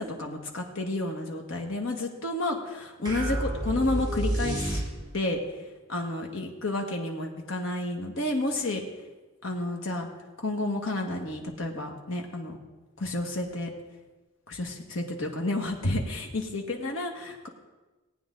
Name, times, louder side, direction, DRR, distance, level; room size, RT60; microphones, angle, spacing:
voice 1, 0.0-4.8 5.1-5.4 5.9-8.8 9.4-10.1 10.4-12.6 13.0-13.7 14.5-17.5, left 2 dB, 70° left, 1 dB, 1.7 m, -31 dB
sound 1, 3.1-5.3, right 1 dB, 20° right, 2.7 m, -30 dB
18.5 x 9.1 x 3.8 m, 1.2 s
head